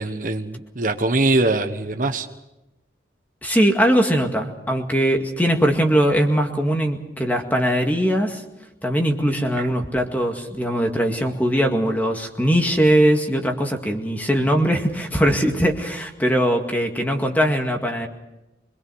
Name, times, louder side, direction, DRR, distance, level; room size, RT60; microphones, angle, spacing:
voice 1, 0.0-2.3 9.6-9.7, right 2 dB, 50° right, 7 dB, 1.1 m, -22 dB
voice 2, 3.4-8.4 8.8-18.1, equal, 10° left, 3 dB, 2.0 m, -20 dB
25.5 x 21.5 x 6.3 m, 0.95 s
head